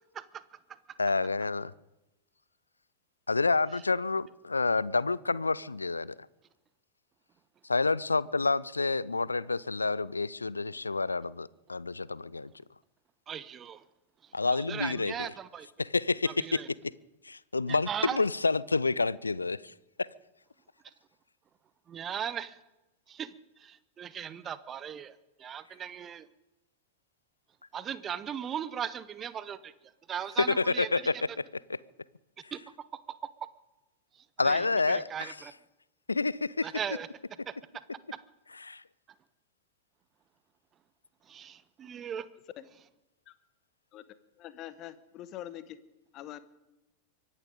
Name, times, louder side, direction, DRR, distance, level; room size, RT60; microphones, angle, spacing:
voice 1, 1.0-1.7 3.3-6.2 7.7-12.5 14.3-15.1 15.8-16.6 17.2-20.1 30.5-31.1 34.4-35.3 36.1-36.7 38.6-38.8, left 3 dB, 80° left, 0.4 m, -29 dB
voice 2, 13.3-13.8 14.2-15.7 16.3-16.7 17.7-18.2 20.8-20.9 21.9-22.6 23.1-26.3 27.7-30.9 32.5-32.6 33.2-33.3 34.1-35.5 36.6-37.1 41.3-42.3, right 8 dB, 25° right, 0.8 m, -38 dB
voice 3, 44.4-45.8 46.1-46.4, left 12 dB, 35° left, 1.2 m, -44 dB
24.5 x 11.0 x 5.2 m
figure-of-eight pair, 90°, 0 cm